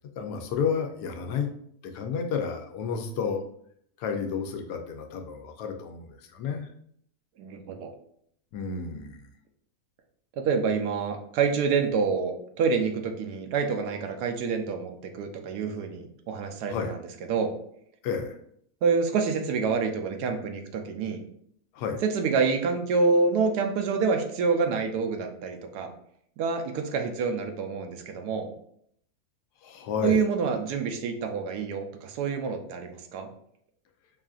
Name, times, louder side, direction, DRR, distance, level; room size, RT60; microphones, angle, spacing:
voice 1, 0.2-1.5 1.8-3.4 4.0-6.7 8.5-9.2 16.7-16.9 18.0-18.3 21.7-22.0 29.6-30.2, left 6 dB, 80° left, 5 dB, 1.1 m, -31 dB
voice 2, 7.4-7.9 10.4-17.0 17.3-17.5 18.8-21.2 22.0-25.9 26.4-28.5 30.0-33.3, right 5 dB, 80° right, 5 dB, 1.1 m, -27 dB
5.5 x 2.5 x 2.3 m, 0.68 s
omnidirectional pair, 1.7 m